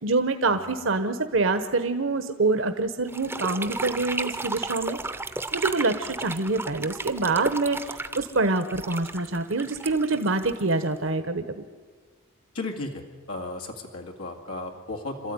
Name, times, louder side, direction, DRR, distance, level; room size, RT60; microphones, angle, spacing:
voice 1, 0.0-5.0 5.5-11.6, right 3 dB, 65° right, 8 dB, 1.1 m, -26 dB
sound 1, 3.1-11.1, right 2 dB, 10° right, 0.7 m, -34 dB
voice 2, 12.5-13.0 13.3-15.3, left 2 dB, 90° left, 1 dB, 2.2 m, -35 dB
27.0 x 13.5 x 9.6 m, 1.5 s
head